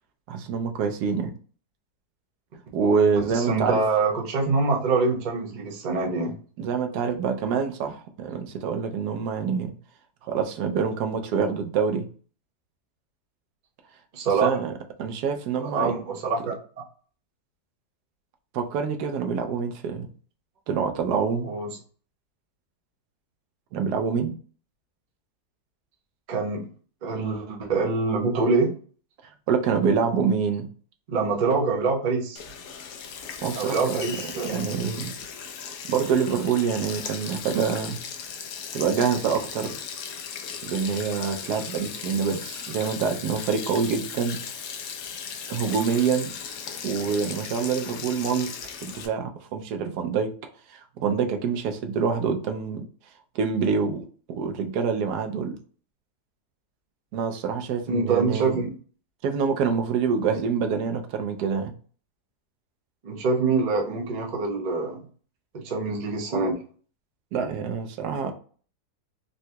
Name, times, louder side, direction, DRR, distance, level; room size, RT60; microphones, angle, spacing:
voice 1, 0.3-1.3 2.7-3.8 6.6-9.7 10.2-12.1 14.4-14.7 15.0-15.9 18.5-20.1 20.7-21.5 23.7-24.3 29.5-30.7 33.4-34.0 34.4-35.2 35.9-38.0 38.7-39.8 40.6-44.4 45.5-46.3 46.8-48.6 48.8-50.3 50.7-52.8 53.3-54.0 54.3-55.6 57.1-58.6 59.2-61.7 67.3-68.3, right 6 dB, 80° right, 1.1 m, -26 dB
voice 2, 3.2-6.4 14.1-14.6 15.6-16.6 21.4-21.7 26.3-26.7 27.0-28.7 31.1-32.4 33.6-34.7 57.9-58.7 60.3-60.4 63.0-65.1 65.5-66.6, right 4 dB, 45° right, 0.5 m, -25 dB
Sink (filling or washing), 32.4-49.1, left 7 dB, 70° left, 1.0 m, -37 dB
3.9 x 2.2 x 2.7 m
omnidirectional pair, 1.7 m